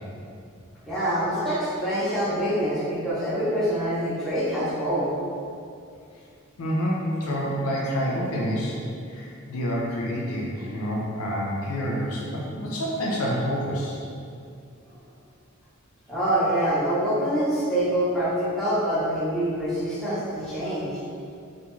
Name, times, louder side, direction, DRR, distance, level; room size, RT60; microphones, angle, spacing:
voice 1, 0.8-5.1 16.1-20.9, right 1 dB, 5° left, -13 dB, 0.7 m, -25 dB
voice 2, 6.6-8.8 9.1-14.0, equal, 80° left, -4 dB, 0.4 m, -28 dB
2.3 x 2.2 x 2.9 m, 2.4 s
head